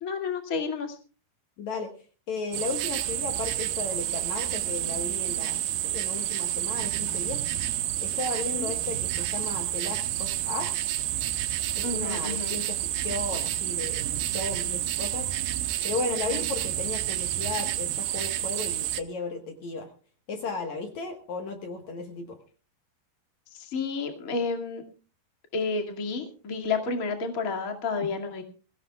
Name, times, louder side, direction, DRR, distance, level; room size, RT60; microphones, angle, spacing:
voice 1, 0.0-1.0 8.6-8.7 11.8-12.6 16.3-16.5 23.5-24.8 25.5-28.4, left 4 dB, 30° left, 3 dB, 1.9 m, -31 dB
voice 2, 1.6-1.9 2.3-7.4 8.0-10.7 11.7-14.1 14.3-15.3 15.8-19.9 20.3-22.4, left 4 dB, 60° left, 5 dB, 2.4 m, -35 dB
sound 1, 2.5-19.0, right 13 dB, 85° right, 2.8 m, -29 dB
22.5 x 17.0 x 2.3 m, 0.37 s
omnidirectional pair, 4.3 m